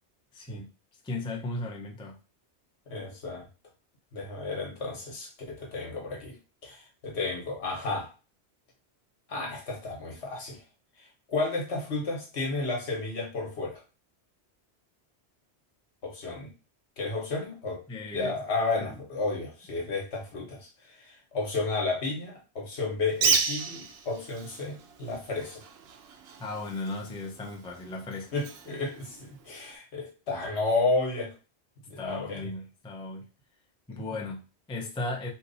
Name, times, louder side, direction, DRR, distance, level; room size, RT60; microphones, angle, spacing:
voice 1, 0.3-0.7 1.0-2.2 17.9-18.3 18.8-19.0 26.4-28.3 32.0-33.3 33.9-35.3, left 2 dB, 5° left, -1 dB, 0.4 m, -36 dB
voice 2, 2.9-3.4 4.1-6.4 6.6-8.1 9.3-10.6 11.0-13.8 16.0-16.5 17.0-17.8 18.1-25.6 28.3-31.3 31.9-32.5 33.9-34.0, left 3 dB, 70° left, 0 dB, 1.4 m, -32 dB
Bird, 23.1-29.8, right 5 dB, 70° right, 0.8 m, -33 dB
3.0 x 2.5 x 3.9 m, 0.33 s
omnidirectional pair, 1.2 m